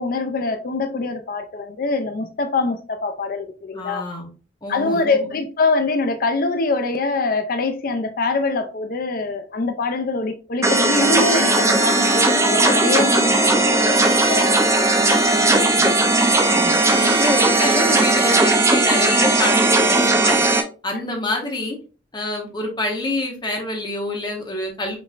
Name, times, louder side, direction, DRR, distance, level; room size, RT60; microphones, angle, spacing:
voice 1, 0.0-4.0 4.7-14.0 14.3-14.9 20.9-21.0, left 3 dB, 50° left, 0.5 m, -24 dB
voice 2, 3.7-4.3 4.6-5.3 15.7-20.5 20.8-21.8 22.1-25.0, left 2 dB, 25° left, 1.0 m, -26 dB
sound 1, 10.6-20.6, right 2 dB, 15° right, 0.6 m, -17 dB
5.2 x 3.2 x 2.5 m
head